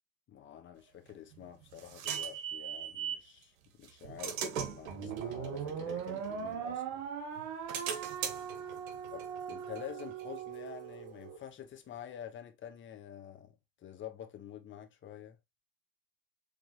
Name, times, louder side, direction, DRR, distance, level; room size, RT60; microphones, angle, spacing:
voice 1, 0.3-7.1 9.1-15.4, left 10 dB, 30° left, 1.1 m, -48 dB
sound 1, 1.1-3.3 3.8-6.9 7.4-10.8, right 8 dB, 85° right, 1.3 m, -41 dB
sound 2, 4.9-11.4, right 7 dB, 45° right, 1.2 m, -40 dB
5.0 x 3.5 x 2.9 m
supercardioid pair, 115°, 40 cm